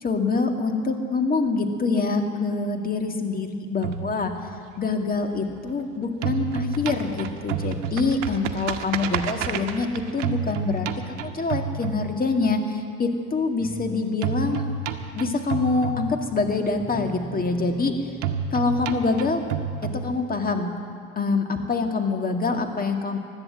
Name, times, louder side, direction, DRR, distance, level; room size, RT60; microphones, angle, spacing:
voice 1, 0.0-4.3 4.8-14.6 15.1-17.9 18.5-19.4 19.8-20.7 21.2-23.2, left 3 dB, 25° left, 4 dB, 2.0 m, -25 dB
sound 1, 3.8-5.8 6.1-12.6 14.2-16.6 18.2-20.6, right 6 dB, 70° right, 1.1 m, -30 dB
sound 2, 13.6-14.2 15.7-19.6, right 3 dB, 30° right, 1.9 m, -40 dB
16.0 x 12.0 x 7.4 m, 2.4 s
hypercardioid pair, 75°, 37 cm